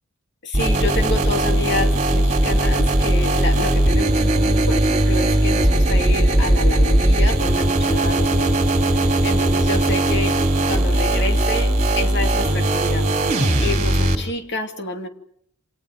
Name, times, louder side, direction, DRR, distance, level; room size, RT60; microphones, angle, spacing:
voice 1, 0.4-8.6 8.9-15.1, left 2 dB, 50° left, 5 dB, 2.5 m, -28 dB
sound 1, 0.5-14.1, right 1 dB, 30° right, 3.1 m, -18 dB
28.5 x 26.5 x 5.2 m, 0.70 s
head